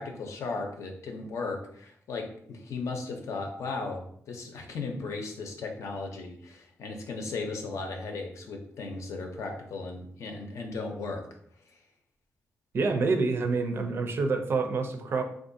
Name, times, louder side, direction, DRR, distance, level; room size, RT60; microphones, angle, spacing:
voice 1, 0.0-11.2, left 3 dB, 75° left, 3 dB, 0.6 m, -36 dB
voice 2, 12.7-15.2, right 4 dB, 50° right, 6 dB, 0.4 m, -27 dB
3.7 x 2.5 x 2.6 m, 0.68 s
wide cardioid pair, 140°, 5 cm